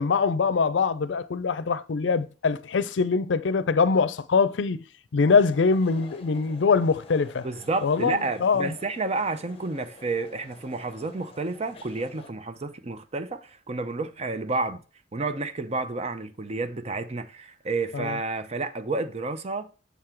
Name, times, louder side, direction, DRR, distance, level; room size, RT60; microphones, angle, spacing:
voice 1, 0.0-4.8 5.1-7.5 7.8-8.7 17.9-18.2, left 5 dB, 85° left, 0.5 m, -23 dB
sound 1, 5.3-12.3, left 3 dB, 30° left, 0.8 m, -50 dB
voice 2, 7.4-14.8 15.1-19.7, right 3 dB, 35° right, 0.6 m, -30 dB
7.0 x 3.8 x 4.4 m
head